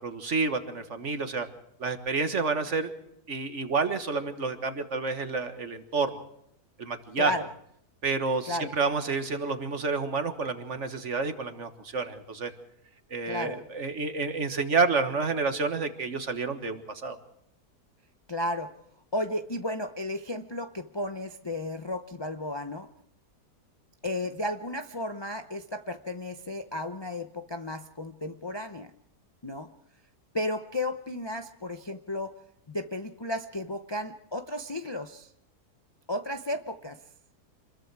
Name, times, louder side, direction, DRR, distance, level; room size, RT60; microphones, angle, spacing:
voice 1, 0.0-1.5 1.8-2.9 3.3-6.2 6.8-7.3 8.0-12.5 13.1-17.2, right 4 dB, 50° right, 8 dB, 1.7 m, -29 dB
voice 2, 7.2-7.5 8.5-8.7 13.3-13.6 18.3-18.7 19.1-22.9 24.0-28.9 29.4-29.7 30.3-32.4 32.7-35.3 36.1-37.0, left 1 dB, 35° left, 7 dB, 0.4 m, -33 dB
26.5 x 21.0 x 4.7 m, 0.73 s
omnidirectional pair, 1.7 m